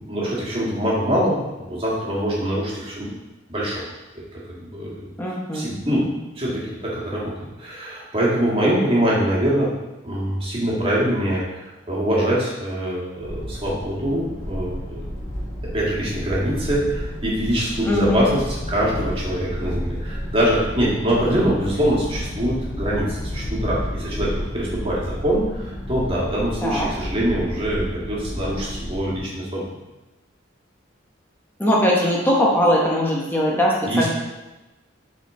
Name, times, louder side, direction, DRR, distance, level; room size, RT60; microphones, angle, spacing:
voice 1, 0.0-3.2 3.5-3.8 4.3-5.1 5.5-6.1 6.3-9.7 10.0-15.1 15.7-29.6 33.9-34.1, equal, 30° right, -5 dB, 1.7 m, -24 dB
voice 2, 5.2-6.0 17.8-18.3 26.6-26.9 31.6-34.1, equal, 10° left, -4 dB, 0.9 m, -20 dB
sound 1, 13.2-29.2, equal, 90° left, 1.8 m, -31 dB
7.4 x 4.3 x 3.7 m, 1.1 s
head